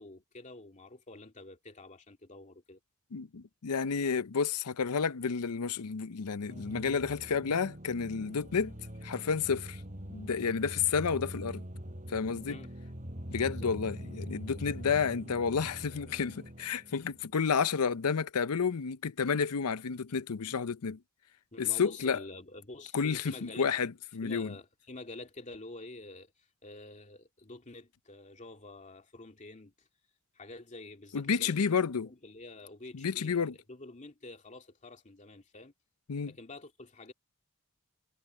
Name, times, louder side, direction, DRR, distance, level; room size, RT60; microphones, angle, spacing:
voice 1, 0.0-2.8 12.5-12.7 13.4-13.7 21.5-23.7 24.2-26.3 26.6-29.7 30.3-31.7 32.0-35.7 36.2-37.1, left 2 dB, 35° left, 2.4 m, -48 dB
voice 2, 3.1-8.7 9.0-9.8 10.1-11.6 12.1-12.6 13.3-21.0 21.6-22.2 22.9-24.5 31.1-32.1 32.9-33.5 36.1-36.3, left 6 dB, 85° left, 0.6 m, -31 dB
sound 1, 6.5-17.2, equal, 35° right, 6.6 m, -44 dB
head